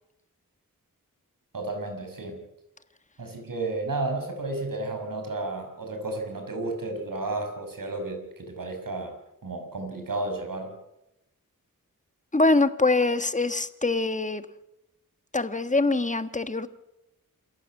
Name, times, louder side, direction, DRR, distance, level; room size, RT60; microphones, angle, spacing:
voice 1, 1.5-2.4 3.2-10.8, right 2 dB, 75° right, 4 dB, 6.1 m, -32 dB
voice 2, 12.3-14.4 15.3-16.7, left 2 dB, 20° left, 11 dB, 1.5 m, -24 dB
27.5 x 14.5 x 7.3 m, 0.87 s
wide cardioid pair, 70°, 33 cm